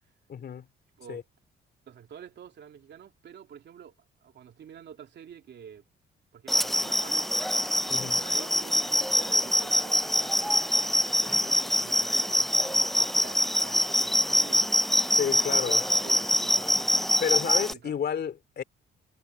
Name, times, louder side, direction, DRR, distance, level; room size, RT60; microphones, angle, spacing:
voice 1, 0.3-0.7 1.1-1.2 7.9-8.2 15.1-15.8 17.2-18.6, left 8 dB, 55° left, 2.7 m, -31 dB
voice 2, 1.9-3.9 4.2-5.8 6.3-7.5 8.2-14.7 15.5-16.9 17.7-17.9, right 8 dB, 60° right, 2.9 m, -48 dB
sound 1, 6.5-17.7, equal, ahead, 0.4 m, -25 dB
cardioid pair, 90°, 20 cm